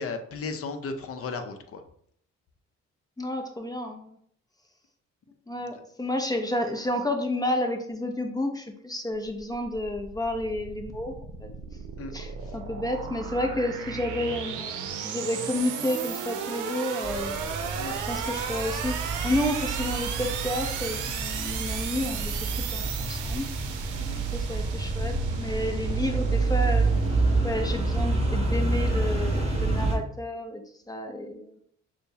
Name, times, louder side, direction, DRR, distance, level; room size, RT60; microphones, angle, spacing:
voice 1, 0.0-1.8 12.0-12.1 12.4-12.6 17.7-18.0 23.9-24.2, left 4 dB, 50° left, 7 dB, 0.7 m, -35 dB
voice 2, 3.2-4.2 5.5-11.1 11.4-11.5 12.1-17.5 18.1-19.0 19.2-22.4 22.7-23.5 24.3-26.9 27.4-31.5, left 1 dB, 15° left, 4 dB, 0.6 m, -31 dB
sound 1, 9.2-28.0, right 7 dB, 85° right, 0.6 m, -35 dB
sound 2, 17.0-30.0, right 3 dB, 20° right, 1.7 m, -28 dB
6.5 x 2.2 x 2.8 m, 0.64 s
cardioid pair, 90°, 30 cm